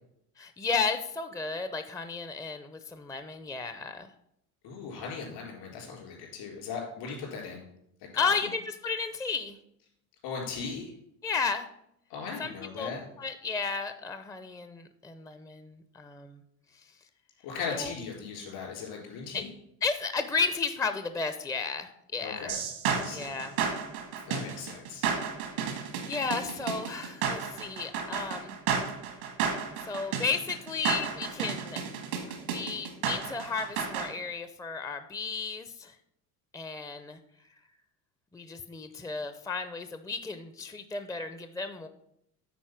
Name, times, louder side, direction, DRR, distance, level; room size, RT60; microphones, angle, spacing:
voice 1, 0.4-4.1 8.2-9.6 11.2-11.7 12.4-12.9 13.2-16.4 17.7-17.9 19.3-19.4 19.8-22.6 23.1-23.5 25.7-28.6 29.8-31.8 32.3-35.9 36.5-37.2 38.3-41.9, left 5 dB, 10° left, 10 dB, 0.5 m, -33 dB
voice 2, 4.6-7.7 8.1-8.3 10.2-10.9 12.1-13.0 17.4-19.5 22.2-22.6 22.9-23.3 24.3-25.1, left 5 dB, 70° left, 0 dB, 3.8 m, -38 dB
sound 1, 22.5-34.1, right 7 dB, 90° right, 1.9 m, -31 dB
9.4 x 4.3 x 5.8 m, 0.77 s
hypercardioid pair, 80°, 42 cm